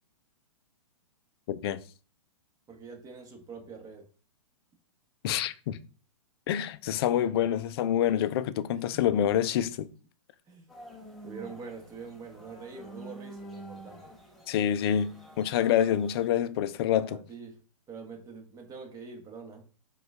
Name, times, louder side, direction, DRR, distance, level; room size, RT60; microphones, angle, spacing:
voice 1, 1.5-1.8 5.2-5.8 6.5-9.9 14.5-17.2, left 10 dB, 45° left, 0.4 m, -27 dB
voice 2, 2.7-4.0 8.7-9.2 10.5-10.7 11.2-14.1 16.9-17.6 17.9-19.6, right 5 dB, 20° right, 1.1 m, -45 dB
sound 1, 10.7-16.3, right 1 dB, ahead, 0.8 m, -48 dB
5.0 x 2.4 x 3.5 m
hypercardioid pair, 115°, 17 cm